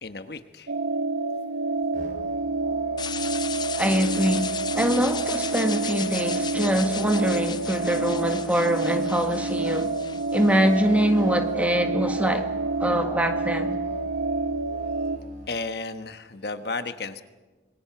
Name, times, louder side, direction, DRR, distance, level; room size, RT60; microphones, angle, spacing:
voice 1, 0.0-0.7 15.5-17.2, left 3 dB, 60° left, 1.2 m, -33 dB
sound 1, 0.7-15.2, right 3 dB, 75° right, 0.8 m, -28 dB
Musical instrument, 1.9-15.5, right 1 dB, 45° right, 3.3 m, -45 dB
sound 2, 3.0-11.0, left 7 dB, 25° left, 0.6 m, -36 dB
voice 2, 3.8-9.9 10.3-12.5 12.8-13.8, equal, 10° right, 1.5 m, -24 dB
26.0 x 22.5 x 6.0 m
head